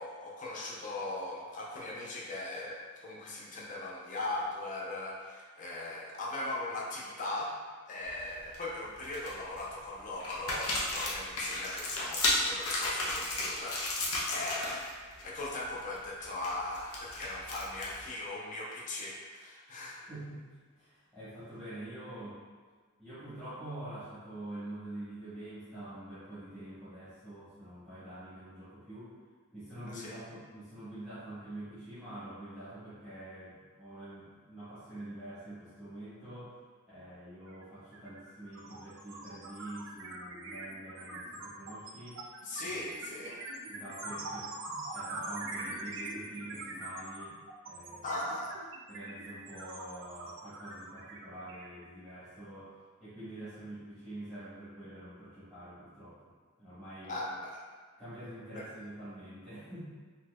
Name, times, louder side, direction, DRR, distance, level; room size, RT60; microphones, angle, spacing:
voice 1, 0.0-7.5 7.9-20.0 29.9-30.1 42.4-43.5 48.0-48.7 57.1-57.6 58.5-58.6, left 2 dB, 35° left, -4 dB, 0.5 m, -39 dB
sound 1, 8.1-8.6 9.0-9.6 10.2-14.9 15.2-15.4 15.8-18.1, left 2 dB, 85° left, 0.7 m, -34 dB
voice 2, 20.0-20.4 20.8-22.4 23.0-29.1 29.5-36.6 36.9-42.2 42.6-42.8 43.7-44.6 44.9-47.4 47.7-48.2 48.9-56.2 56.6-57.2 58.0-59.9, right 1 dB, ahead, -16 dB, 1.1 m, -46 dB
sound 2, 37.5-37.6 37.9-52.3, right 2 dB, 60° right, 0.4 m, -43 dB
3.8 x 2.7 x 2.3 m, 1.5 s
head